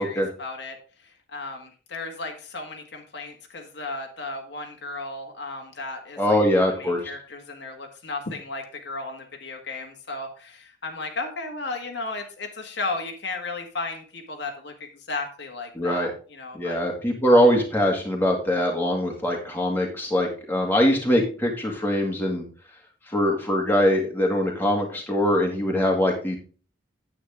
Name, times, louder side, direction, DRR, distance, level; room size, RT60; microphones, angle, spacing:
voice 1, 0.0-16.8, left 3 dB, 60° left, 3 dB, 1.7 m, -35 dB
voice 2, 6.2-7.0 15.8-16.1 16.5-22.4 23.1-26.4, equal, 10° left, -1 dB, 2.0 m, -22 dB
9.5 x 8.6 x 3.6 m, 0.38 s
head